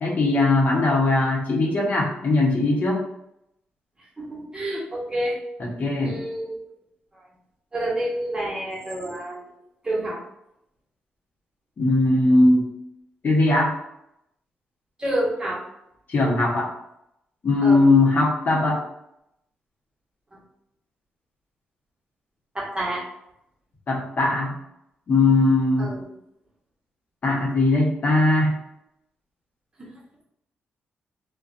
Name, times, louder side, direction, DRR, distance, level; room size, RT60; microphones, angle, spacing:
voice 1, 0.0-3.0 5.6-6.2 11.8-12.7 13.2-13.7 16.1-16.7 17.4-18.8 23.9-24.6 25.1-26.0 27.2-28.6, left 2 dB, 50° left, -2 dB, 0.8 m, -20 dB
voice 2, 4.2-5.4 6.0-6.6 7.1-7.3 7.7-9.5 9.8-10.2 15.0-15.6 17.6-17.8 22.5-23.0 25.8-26.0 29.8-29.9, right 1 dB, 25° right, -4 dB, 1.1 m, -28 dB
2.5 x 2.2 x 2.5 m, 0.80 s
cardioid pair, 70°, 4 cm